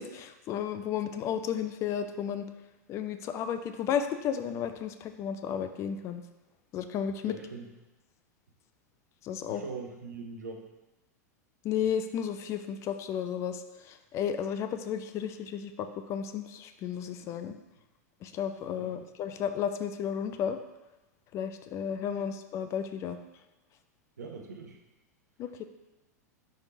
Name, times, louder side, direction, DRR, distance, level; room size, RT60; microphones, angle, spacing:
voice 1, 0.0-2.5 2.9-6.2 6.7-7.3 9.2-9.6 11.6-13.6 13.9-17.6 18.2-20.6 21.3-23.2 25.4-25.6, left 8 dB, 30° left, 9 dB, 0.4 m, -33 dB
voice 2, 7.2-7.7 9.4-10.6 18.7-19.0 22.1-22.3 24.2-24.8, right 4 dB, 75° right, 2 dB, 0.9 m, -42 dB
10.0 x 3.5 x 2.7 m, 1.1 s
figure-of-eight pair, 90°, 9 cm